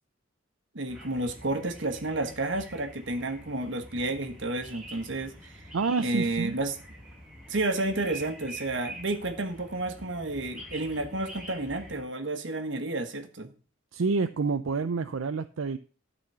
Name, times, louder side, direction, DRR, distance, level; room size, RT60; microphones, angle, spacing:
voice 1, 0.7-5.6 6.0-6.8 7.5-13.5, right 2 dB, 65° right, 7 dB, 1.5 m, -31 dB
sound 1, 0.9-12.0, right 1 dB, 5° right, 4.5 m, -46 dB
voice 2, 5.7-6.6 13.9-15.8, right 4 dB, 85° right, 9 dB, 0.5 m, -28 dB
12.5 x 4.2 x 6.8 m, 0.39 s
head